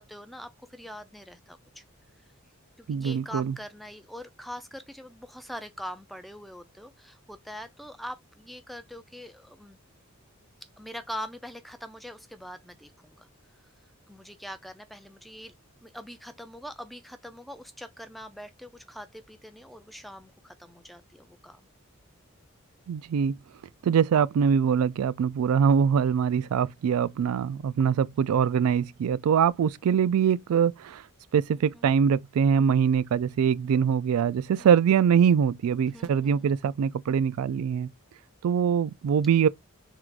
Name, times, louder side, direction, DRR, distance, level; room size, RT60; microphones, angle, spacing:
voice 1, 0.0-1.8 2.8-9.8 10.8-13.3 14.1-15.5 15.8-21.7 31.7-31.9 34.6-34.7 35.9-36.5, equal, ahead, 0.3 m, -43 dB
voice 2, 2.9-3.5 22.9-23.3 23.8-31.0 31.3-37.9 38.4-39.5, right 7 dB, 85° right, 0.3 m, -23 dB
3.8 x 2.4 x 4.5 m
head